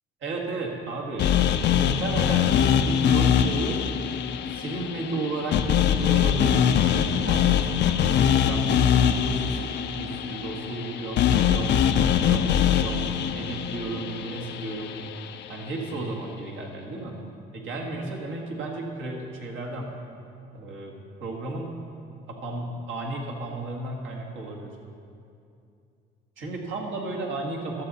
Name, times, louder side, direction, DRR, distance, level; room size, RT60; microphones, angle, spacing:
voice 1, 0.2-3.8 4.5-8.0 8.3-13.1 13.3-14.9 15.5-17.2 17.5-19.9 20.5-21.7 22.3-24.8 26.4-27.8, right 2 dB, 65° right, 0 dB, 1.7 m, -33 dB
sound 1, 1.2-15.4, left 9 dB, 55° left, 0.5 m, -23 dB
12.5 x 7.2 x 4.1 m, 2.5 s
supercardioid pair, 75°, 21 cm